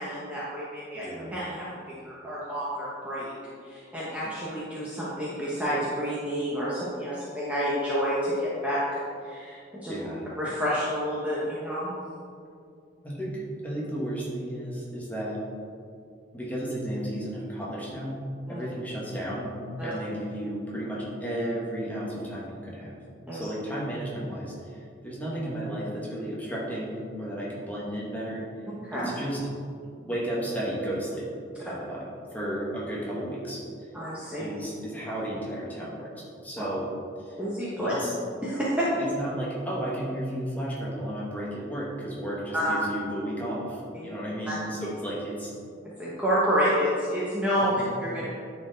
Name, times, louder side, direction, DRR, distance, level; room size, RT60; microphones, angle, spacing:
voice 1, 0.0-3.3 3.6-9.9 10.4-11.9 18.5-18.6 19.8-19.9 23.3-23.5 28.8-29.1 33.9-34.5 36.6-36.7 37.4-37.9 38.4-38.9 42.5-42.7 43.9-44.1 44.5-44.6 45.8-48.3, equal, 5° right, -8 dB, 1.0 m, -29 dB
voice 2, 0.9-1.3 9.9-10.2 13.0-15.4 16.3-18.2 18.5-23.0 23.3-28.5 28.9-29.4 30.0-31.3 31.6-33.6 34.4-36.9 37.2-37.4 37.8-38.1 39.0-45.5 47.8-48.0, right 1 dB, 10° left, -5 dB, 1.4 m, -33 dB
9.8 x 4.5 x 4.0 m, 2.4 s
head